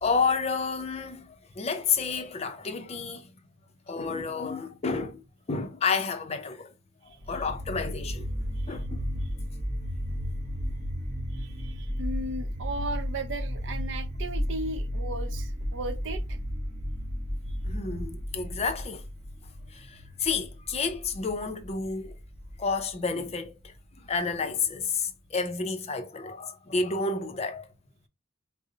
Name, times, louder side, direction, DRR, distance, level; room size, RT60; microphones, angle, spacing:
voice 1, 0.0-3.3 3.9-6.7 7.0-8.3 8.7-9.1 17.6-19.1 19.7-22.2 22.6-23.7 24.0-27.7, left 4 dB, 30° left, 0.5 m, -30 dB
sound 1, 7.2-24.2, equal, 35° right, 0.8 m, -34 dB
voice 2, 11.3-16.4, right 1 dB, 65° right, 0.6 m, -36 dB
3.8 x 2.0 x 3.8 m
head